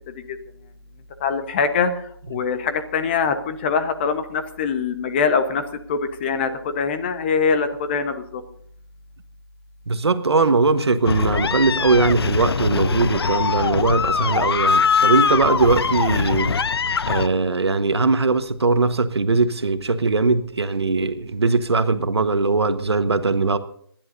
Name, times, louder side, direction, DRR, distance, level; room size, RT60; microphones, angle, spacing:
voice 1, 1.2-2.0 2.3-5.6 5.9-8.4, left 5 dB, 25° left, 1.1 m, -23 dB
voice 2, 9.9-16.5 17.1-23.6, right 3 dB, 80° right, 1.4 m, -20 dB
sound 1, 11.0-17.3, left 5 dB, 70° left, 0.6 m, -22 dB
29.0 x 11.0 x 2.7 m
hypercardioid pair, 160°, 14 cm